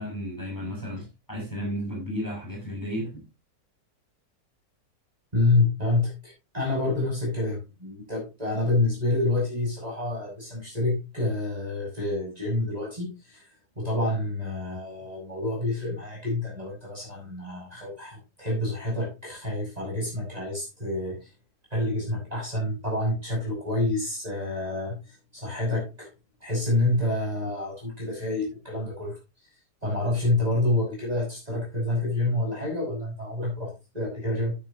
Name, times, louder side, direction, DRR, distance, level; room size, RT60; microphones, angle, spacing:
voice 1, 0.0-3.2, equal, 10° left, 7.3 m, -33 dB
voice 2, 5.3-13.5 13.7-21.3 21.7-26.1 26.4-29.2 29.8-34.6, left 2 dB, 20° right, 6.6 m, -28 dB
12.0 x 9.7 x 2.9 m
omnidirectional pair, 1.8 m